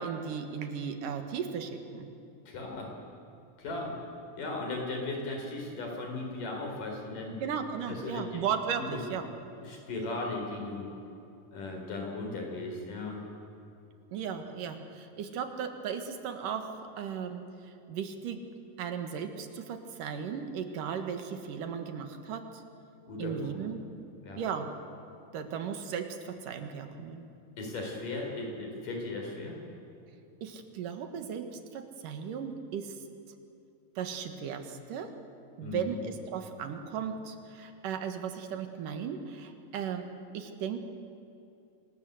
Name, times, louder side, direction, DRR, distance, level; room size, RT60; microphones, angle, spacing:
voice 1, 0.0-2.1 7.4-9.3 14.1-17.4 17.9-18.4 18.8-22.6 23.2-23.9 24.4-24.7 25.3-27.3 30.4-33.0 34.0-35.1 35.6-40.1 40.3-40.8, right 7 dB, 85° right, 7 dB, 3.2 m, -36 dB
voice 2, 2.5-2.9 3.6-4.0 4.4-7.4 7.9-8.4 8.8-9.0 9.6-10.9 11.5-13.2 23.1-23.5 24.2-24.4 27.6-29.6 35.6-36.0, left 2 dB, 80° left, 1 dB, 5.9 m, -37 dB
26.0 x 19.0 x 8.3 m, 2.7 s
omnidirectional pair, 3.7 m